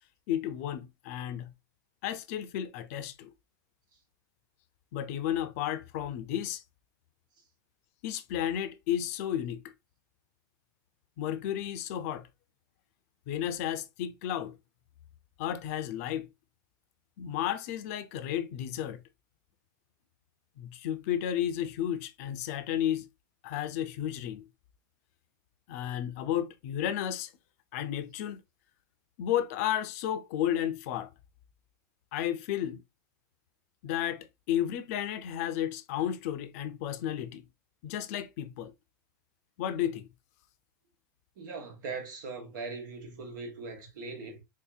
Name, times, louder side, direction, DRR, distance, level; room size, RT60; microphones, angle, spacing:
voice 1, 0.3-1.5 2.0-3.3 4.9-6.6 8.0-9.6 11.2-12.3 13.3-14.6 15.4-16.3 17.2-19.0 20.6-23.1 23.4-24.5 25.7-27.3 27.7-28.4 29.2-31.1 32.1-32.8 33.8-37.5 37.8-38.7 39.6-40.1, left 10 dB, 50° left, 0.5 m, -32 dB
voice 2, 41.4-44.4, right 4 dB, 75° right, 1.3 m, -40 dB
3.8 x 2.7 x 2.3 m
supercardioid pair, 160°, 11 cm